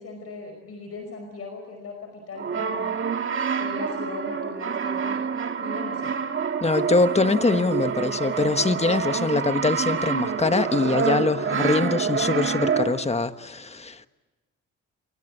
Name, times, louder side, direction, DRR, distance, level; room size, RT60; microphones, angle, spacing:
voice 1, 0.0-3.0 3.6-6.2, left 3 dB, 50° left, 5.2 m, -38 dB
Brass instrument, 2.4-13.2, right 6 dB, 40° right, 2.0 m, -27 dB
voice 2, 6.6-14.1, left 3 dB, 20° left, 1.4 m, -23 dB
28.5 x 23.5 x 8.6 m
cardioid pair, 90°, 30 cm